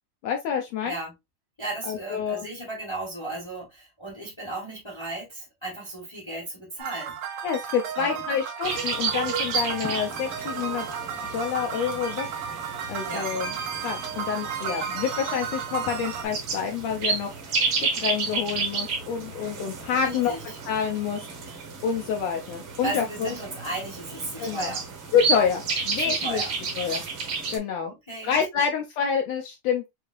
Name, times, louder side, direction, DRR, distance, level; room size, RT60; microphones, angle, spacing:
voice 1, 0.2-1.0 1.9-2.5 7.4-10.9 11.3-12.3 12.9-13.5 13.8-20.3 20.7-21.2 21.5-21.6 21.8-23.3 24.4-24.7 25.1-26.4 26.8-27.0 27.5-27.9 28.2-29.8, left 7 dB, 75° left, 1.6 m, -27 dB
voice 2, 0.8-1.1 1.6-7.1 8.0-8.2 13.1-13.3 20.0-20.6 22.8-24.8 26.0-26.5 27.8-28.4, right 2 dB, 35° left, 0.4 m, -35 dB
fast ukulele, 6.8-16.3, right 7 dB, 80° right, 2.5 m, -34 dB
sound 1, 8.6-27.6, right 4 dB, 55° right, 1.6 m, -32 dB
6.4 x 2.8 x 2.4 m
omnidirectional pair, 3.6 m